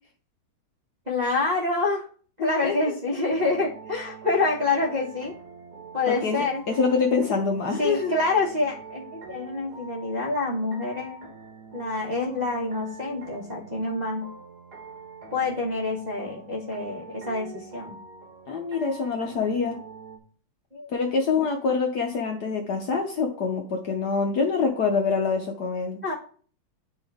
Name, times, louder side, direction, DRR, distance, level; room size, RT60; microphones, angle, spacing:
voice 1, 1.1-2.1 2.4-5.3 5.9-6.6 7.8-11.3 11.7-14.3 15.3-17.9 20.7-20.9 26.0-26.1, left 3 dB, 25° right, -6 dB, 1.0 m, -27 dB
voice 2, 2.4-2.9 6.1-8.1 18.5-19.8 20.9-26.0, left 5 dB, 60° left, 2 dB, 1.1 m, -25 dB
sound 1, 3.3-20.2, right 4 dB, 55° right, 1.5 m, -44 dB
9.8 x 3.7 x 3.5 m, 0.43 s
omnidirectional pair, 2.3 m